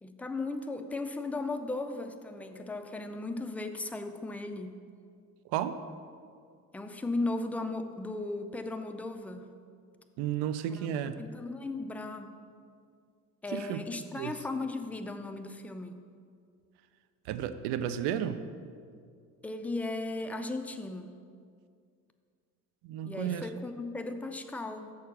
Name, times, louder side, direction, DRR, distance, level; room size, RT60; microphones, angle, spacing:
voice 1, 0.0-4.8 6.7-9.5 10.7-12.3 13.4-16.0 19.4-21.1 23.0-24.9, left 2 dB, 5° left, 6 dB, 0.4 m, -36 dB
voice 2, 10.2-11.2 13.5-13.8 14.2-14.3 17.3-18.4 22.8-23.5, right 10 dB, 60° right, 12 dB, 0.6 m, -32 dB
6.5 x 4.7 x 6.8 m, 2.2 s
hypercardioid pair, 65°, 46 cm